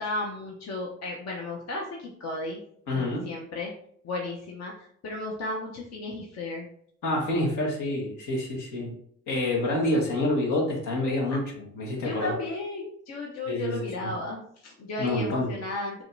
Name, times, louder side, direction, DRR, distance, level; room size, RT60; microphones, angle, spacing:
voice 1, 0.0-2.6 2.9-3.7 4.0-6.7 11.9-16.0, left 2 dB, 55° left, -1 dB, 0.9 m, -34 dB
voice 2, 2.9-3.2 7.0-8.9 9.3-12.3 13.5-14.1 15.0-15.5, left 1 dB, 80° left, -2 dB, 1.5 m, -27 dB
5.0 x 3.0 x 2.6 m, 0.64 s
cardioid pair, 90°, 30 cm